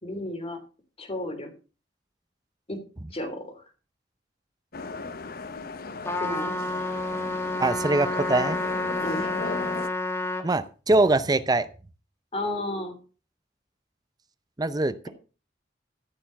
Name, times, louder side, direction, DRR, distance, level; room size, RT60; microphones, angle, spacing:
voice 1, 0.0-0.6 1.0-1.5 2.7-2.8 3.1-3.6 6.2-6.5 9.0-9.3 12.3-13.0, left 1 dB, 35° left, 6 dB, 3.4 m, -32 dB
sound 1, 4.7-9.9, left 3 dB, 55° left, 0.9 m, -36 dB
Trumpet, 6.0-10.5, left 2 dB, 15° left, 1.8 m, -29 dB
voice 2, 7.6-8.6 10.4-11.7 14.6-15.1, right 2 dB, 20° right, 13 dB, 0.7 m, -23 dB
14.5 x 7.0 x 5.9 m, 0.35 s
head